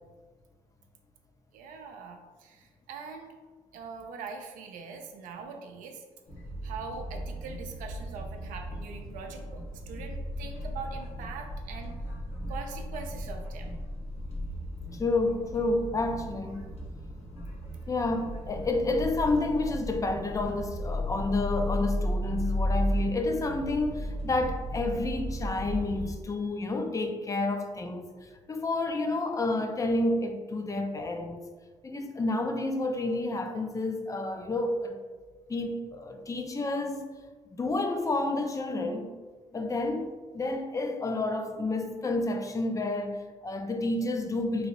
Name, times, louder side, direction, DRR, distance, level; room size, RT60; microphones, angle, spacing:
voice 1, 1.5-3.3 3.7-6.0 6.6-11.9 12.5-13.7, right 5 dB, 85° right, 0.5 m, -42 dB
sound 1, 6.3-26.1, equal, 50° left, 1.0 m, -35 dB
voice 2, 14.9-16.6 17.9-31.5 31.8-35.0 35.5-37.1 37.6-39.1 39.5-44.7, left 2 dB, 25° left, 0.4 m, -30 dB
3.0 x 2.7 x 2.9 m
cardioid pair, 85°, 13 cm